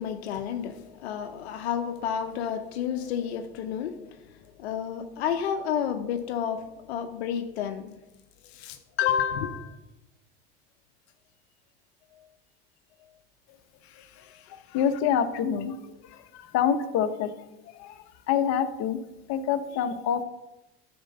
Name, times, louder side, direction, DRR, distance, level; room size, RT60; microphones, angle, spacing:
voice 1, 0.0-8.0 8.4-9.8 12.1-12.2 13.8-14.8, left 8 dB, 90° left, 8 dB, 0.7 m, -31 dB
voice 2, 14.5-17.3 17.7-19.0 19.3-20.2, left 8 dB, 60° left, 9 dB, 0.9 m, -27 dB
8.7 x 4.4 x 6.5 m, 0.96 s
supercardioid pair, 90°, 31 cm